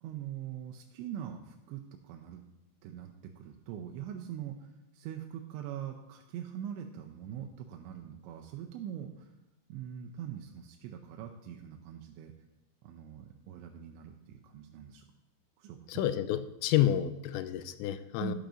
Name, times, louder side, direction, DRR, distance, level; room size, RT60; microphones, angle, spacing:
voice 1, 0.0-2.4 2.8-9.3 9.7-12.3 12.8-15.0 15.6-16.1 18.2-18.4, right 9 dB, 85° right, 3 dB, 2.9 m, -43 dB
voice 2, 15.9-18.4, left 11 dB, 85° left, 11 dB, 2.8 m, -29 dB
12.0 x 11.5 x 2.6 m, 0.93 s
omnidirectional pair, 5.3 m